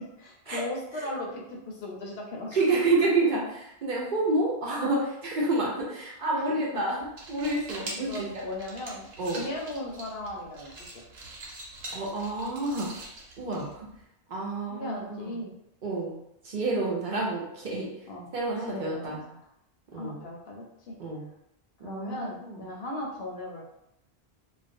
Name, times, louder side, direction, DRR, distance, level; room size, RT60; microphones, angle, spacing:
voice 1, 0.2-2.6 6.3-6.4 8.0-11.0 14.7-15.5 18.1-18.3 18.6-19.4 19.9-20.9 21.8-23.8, left 1 dB, 80° left, -1 dB, 0.8 m, -37 dB
voice 2, 2.5-8.4 9.2-9.4 11.9-12.9 13.4-13.9 14.3-15.3 15.8-16.1 16.4-17.9 18.3-19.2 19.9-20.2 21.0-21.2 21.8-22.6, right 2 dB, 60° right, -3 dB, 0.7 m, -29 dB
sound 1, 7.0-14.0, right 2 dB, 85° right, 0.9 m, -44 dB
2.4 x 2.0 x 2.5 m, 0.79 s
omnidirectional pair, 1.1 m